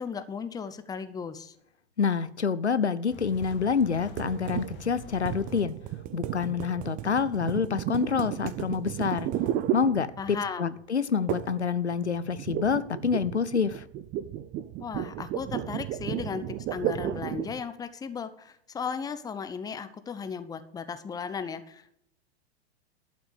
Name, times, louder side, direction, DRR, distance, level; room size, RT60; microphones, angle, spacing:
voice 1, 0.0-1.5 10.2-10.8 14.8-22.0, left 6 dB, 10° left, 11 dB, 0.8 m, -36 dB
voice 2, 2.0-5.7 6.1-9.3 9.7-13.8, left 6 dB, 85° left, 15 dB, 0.7 m, -27 dB
sound 1, 3.1-5.6, left 8 dB, 35° left, 1.5 m, -44 dB
sound 2, 4.2-10.5 11.3-11.7 11.9-17.6, right 11 dB, 25° right, 0.5 m, -33 dB
12.0 x 6.0 x 8.1 m, 0.72 s
figure-of-eight pair, 95°, 33 cm